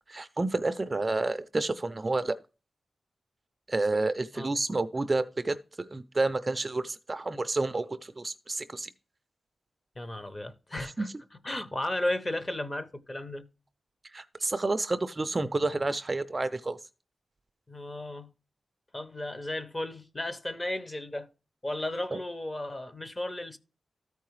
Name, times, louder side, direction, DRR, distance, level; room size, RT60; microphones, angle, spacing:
voice 1, 0.1-2.4 3.7-8.9 10.8-11.1 14.1-16.8 22.1-22.2, right 2 dB, 25° right, 0.3 m, -30 dB
voice 2, 10.0-11.1 11.4-13.4 17.7-18.3 18.9-21.3 21.6-23.6, left 1 dB, 20° left, 0.7 m, -34 dB
13.5 x 4.6 x 3.1 m
wide cardioid pair, 165°, 0 cm